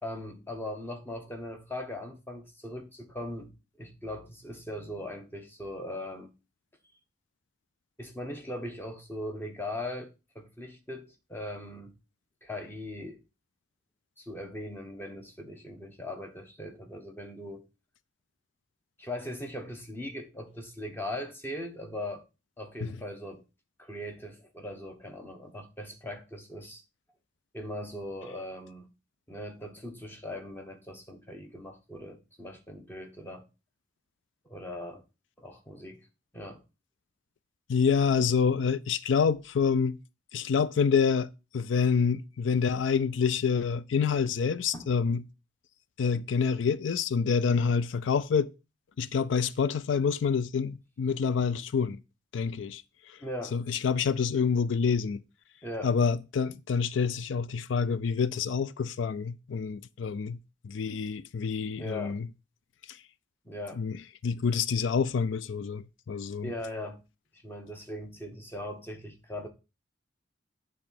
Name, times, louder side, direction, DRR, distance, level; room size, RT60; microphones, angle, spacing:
voice 1, 0.0-6.3 8.0-12.0 12.4-13.2 14.2-17.7 19.0-22.2 22.6-23.4 23.8-26.8 27.5-28.9 29.3-33.4 34.4-35.0 35.4-36.1 36.3-36.6 44.7-44.9 53.2-53.6 55.6-55.9 61.7-62.2 63.4-63.8 66.4-67.0 67.3-69.5, left 1 dB, 10° left, 1.1 m, -39 dB
voice 2, 37.7-40.0 40.3-45.2 46.0-48.5 49.0-52.0 52.3-52.8 53.5-55.2 55.8-60.4 60.6-62.3 62.9-63.0 63.8-66.5, left 6 dB, 85° left, 0.4 m, -27 dB
8.7 x 3.7 x 5.8 m
head